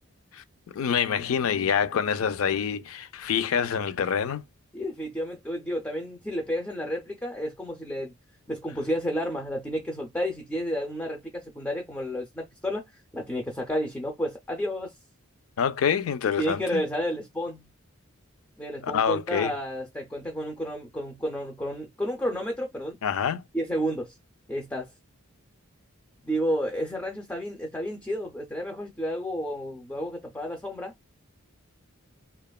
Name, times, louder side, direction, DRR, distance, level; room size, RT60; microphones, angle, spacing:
voice 1, 0.7-4.4 15.6-16.8 18.8-19.5 23.0-23.4, left 7 dB, 75° left, 0.4 m, -26 dB
voice 2, 4.7-8.1 8.5-14.9 16.4-17.7 18.6-23.0 23.5-24.1 24.5-24.9 26.2-30.9, equal, 10° left, 0.4 m, -31 dB
2.8 x 2.3 x 2.2 m
head